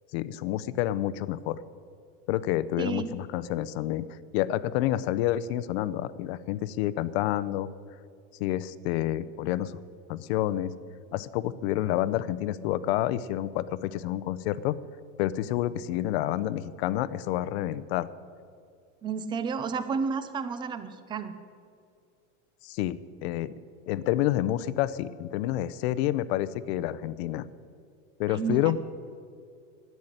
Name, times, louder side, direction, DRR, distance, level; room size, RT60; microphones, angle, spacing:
voice 1, 0.1-1.6 2.3-7.7 8.4-9.8 10.1-10.7 11.1-14.7 15.2-18.1 22.6-23.5 23.9-27.5 28.2-28.8, left 13 dB, 55° left, 16 dB, 0.6 m, -29 dB
voice 2, 2.8-3.1 19.0-21.4 28.3-28.7, right 5 dB, 15° right, 12 dB, 0.4 m, -31 dB
10.5 x 9.4 x 9.9 m, 2.3 s
supercardioid pair, 160°, 37 cm